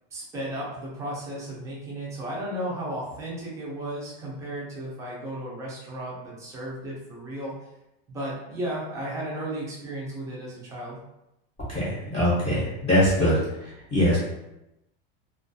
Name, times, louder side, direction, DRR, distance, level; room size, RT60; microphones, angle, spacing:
voice 1, 0.1-7.5 8.1-11.0, right 1 dB, 10° right, -5 dB, 0.3 m, -34 dB
voice 2, 11.7-13.3 13.6-14.2, equal, 20° left, -8 dB, 0.7 m, -23 dB
2.2 x 2.2 x 2.6 m, 0.89 s
supercardioid pair, 165°, 29 cm